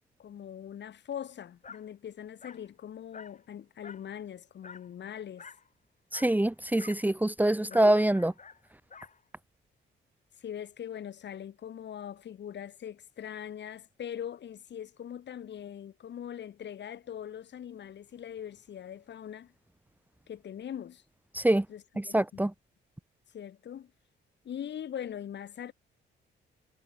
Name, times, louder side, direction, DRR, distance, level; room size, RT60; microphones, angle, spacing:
voice 1, 0.2-5.5 7.7-7.8 10.4-19.5 20.3-21.0 21.7-22.4 23.3-23.9 24.4-25.7, left 9 dB, 60° left, 6.1 m, -41 dB
Dog, 1.6-1.9 2.4-2.7 3.1-3.4 3.8-4.1 4.6-4.9 5.4-5.7 6.1-6.4 6.8-7.1 7.7-9.2, left 5 dB, 40° left, 6.6 m, -49 dB
voice 2, 6.1-8.3 21.3-21.6 22.1-22.5, right 1 dB, 10° right, 1.5 m, -24 dB
cardioid pair, 90°, 20 cm